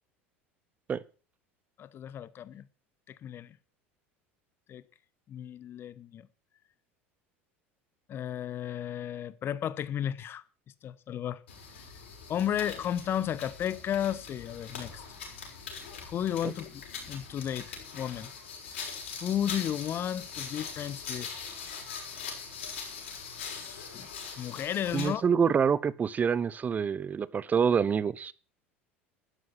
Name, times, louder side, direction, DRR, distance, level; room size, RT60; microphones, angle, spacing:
voice 1, 1.8-2.6 3.1-3.6 4.7-4.8 5.3-6.3 8.1-10.4 10.8-11.4 12.3-15.0 16.1-16.8 17.1-18.3 19.2-21.3 23.4-25.2, left 10 dB, 35° left, 1.1 m, -33 dB
sound 1, 11.5-25.2, left 6 dB, 65° left, 6.0 m, -42 dB
voice 2, 24.9-28.3, right 6 dB, 25° right, 0.8 m, -26 dB
13.0 x 11.5 x 6.0 m
figure-of-eight pair, 75°, 7 cm